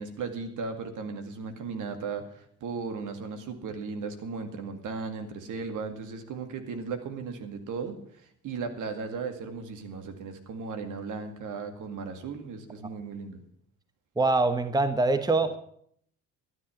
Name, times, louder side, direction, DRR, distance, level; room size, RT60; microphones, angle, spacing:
voice 1, 0.0-13.4, right 4 dB, 60° right, 7 dB, 2.2 m, -36 dB
voice 2, 14.2-15.6, right 3 dB, 10° right, 10 dB, 1.1 m, -24 dB
12.5 x 9.8 x 7.1 m, 0.66 s
hypercardioid pair, 60°, 36 cm